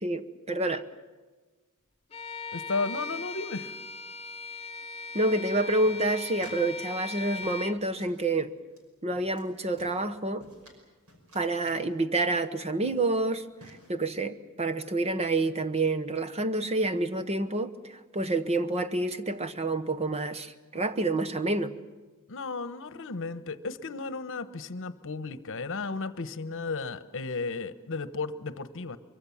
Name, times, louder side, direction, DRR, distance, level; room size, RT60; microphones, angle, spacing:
voice 1, 0.0-0.8 5.1-8.5 9.0-10.4 11.3-13.4 13.9-21.7, right 2 dB, 30° right, 11 dB, 1.0 m, -28 dB
Bowed string instrument, 2.1-7.8, left 4 dB, 30° left, 1.0 m, -39 dB
voice 2, 2.5-3.7 22.3-29.0, left 3 dB, 60° left, 13 dB, 1.1 m, -34 dB
sound 1, 5.9-6.7 7.0-7.7 8.0-8.2 8.7-8.8 9.1-9.5 9.8-10.8 11.1-11.8 12.5-12.6 12.9-13.2 13.6-13.9, right 1 dB, 70° right, 5.6 m, -52 dB
24.0 x 23.5 x 7.3 m, 1.3 s
head